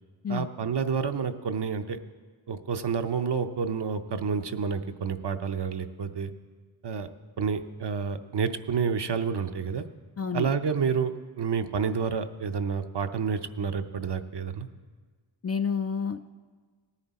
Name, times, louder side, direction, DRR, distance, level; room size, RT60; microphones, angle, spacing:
voice 1, 0.3-2.0 2.5-6.3 6.8-7.1 7.4-9.9 10.3-14.7, right 6 dB, 55° right, 8 dB, 0.7 m, -29 dB
voice 2, 10.2-10.5 15.4-16.3, left 6 dB, 35° left, 8 dB, 0.4 m, -29 dB
18.0 x 9.9 x 4.1 m, 1.5 s
wide cardioid pair, 75°, 49 cm